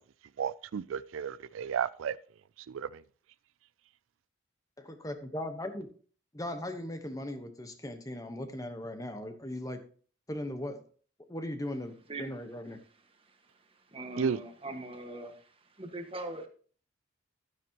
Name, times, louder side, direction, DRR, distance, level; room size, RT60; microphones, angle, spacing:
voice 1, 0.4-2.2 2.7-3.0 14.2-14.4, right 7 dB, 80° right, 0.4 m, -32 dB
voice 2, 4.8-5.9 6.3-9.8 10.3-10.8 11.3-12.8, left 1 dB, 15° left, 1.1 m, -38 dB
voice 3, 13.9-15.4 15.8-16.5, right 2 dB, 25° right, 1.5 m, -40 dB
12.0 x 9.4 x 2.9 m
head